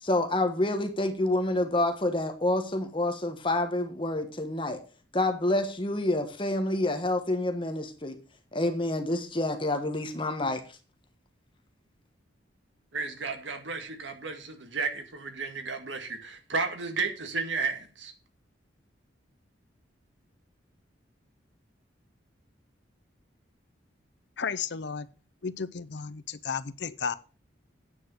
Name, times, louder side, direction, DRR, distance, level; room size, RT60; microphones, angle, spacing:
voice 1, 0.0-4.8 5.1-8.2 8.5-10.8, left 1 dB, 25° left, 6 dB, 1.4 m, -28 dB
voice 2, 12.9-18.1, right 4 dB, 75° right, 6 dB, 2.0 m, -33 dB
voice 3, 24.4-25.1 25.4-27.2, left 6 dB, 65° left, 16 dB, 0.6 m, -33 dB
9.2 x 6.5 x 6.2 m, 0.36 s
head